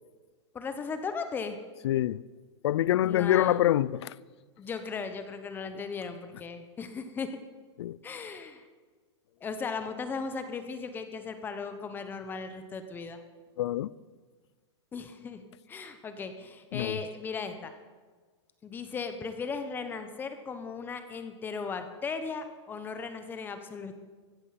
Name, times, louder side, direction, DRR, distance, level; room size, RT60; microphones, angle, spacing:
voice 1, 0.5-1.6 3.0-3.6 4.6-7.3 8.0-8.6 9.4-13.2 14.9-17.7 18.6-23.9, left 5 dB, 15° left, 1.0 m, -37 dB
voice 2, 1.8-2.2 2.6-4.2 7.8-8.0 13.6-13.9 16.7-17.0, left 13 dB, 65° left, 0.5 m, -26 dB
15.5 x 14.0 x 5.9 m
supercardioid pair, 160°, 15 cm